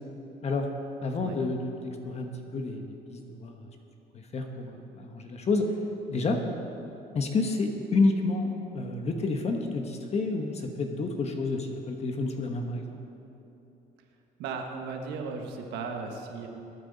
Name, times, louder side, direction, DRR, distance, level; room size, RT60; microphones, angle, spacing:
voice 1, 1.0-3.7 4.1-5.7 6.1-6.4 7.1-13.0, left 3 dB, 40° left, 3 dB, 1.3 m, -29 dB
voice 2, 14.4-16.5, right 4 dB, 90° right, 3 dB, 1.5 m, -36 dB
21.5 x 9.3 x 4.1 m, 2.9 s
cardioid pair, 110°, 17 cm